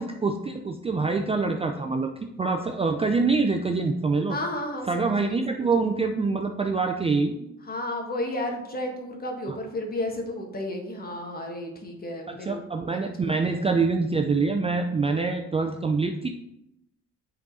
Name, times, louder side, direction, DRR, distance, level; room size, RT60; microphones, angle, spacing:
voice 1, 0.0-4.4 4.9-7.5 12.3-16.3, right 4 dB, 20° right, 4 dB, 0.4 m, -25 dB
voice 2, 4.3-5.7 7.7-12.6 12.9-13.0 13.2-13.6, left 1 dB, 30° left, 2 dB, 1.4 m, -33 dB
7.3 x 3.8 x 4.1 m, 0.87 s
cardioid pair, 90°, 30 cm